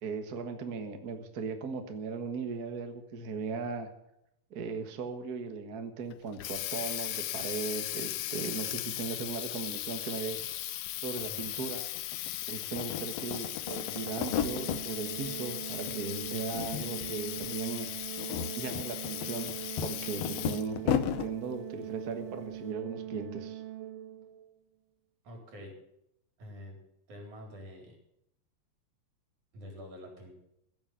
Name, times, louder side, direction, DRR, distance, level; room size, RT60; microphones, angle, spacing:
voice 1, 0.0-3.9 4.5-10.5 11.0-11.8 12.5-17.9 18.6-19.5 19.8-23.6, right 4 dB, 45° right, 6 dB, 1.2 m, -38 dB
Water tap faucet, 6.1-20.8, left 15 dB, 85° left, 2.3 m, -38 dB
sound 1, 10.9-11.0 11.2-12.3 12.6-14.8 15.2-16.0 16.2-17.1 17.4-17.5 18.0-21.3, left 9 dB, 70° left, 1.7 m, -34 dB
Organ, 13.7-24.5, right 13 dB, 90° right, 2.5 m, -42 dB
voice 2, 25.2-25.8 26.4-26.8 27.1-28.0 29.5-30.4, equal, 65° right, 1 dB, 5.4 m, -47 dB
16.0 x 7.4 x 9.3 m, 0.81 s
omnidirectional pair, 3.7 m